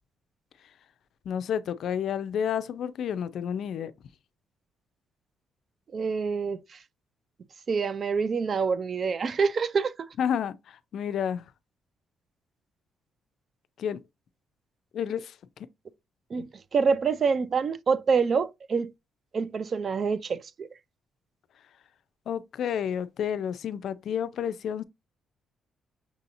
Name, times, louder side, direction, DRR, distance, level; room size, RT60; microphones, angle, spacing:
voice 1, 1.3-3.9 10.2-11.4 13.8-14.0 14.9-15.3 16.4-16.5 22.3-24.8, left 8 dB, 70° left, 0.4 m, -30 dB
voice 2, 5.9-6.8 7.7-10.1 16.3-18.9 19.3-20.7, right 5 dB, 45° right, 0.4 m, -26 dB
6.1 x 2.8 x 2.6 m
cardioid pair, 90°, 0 cm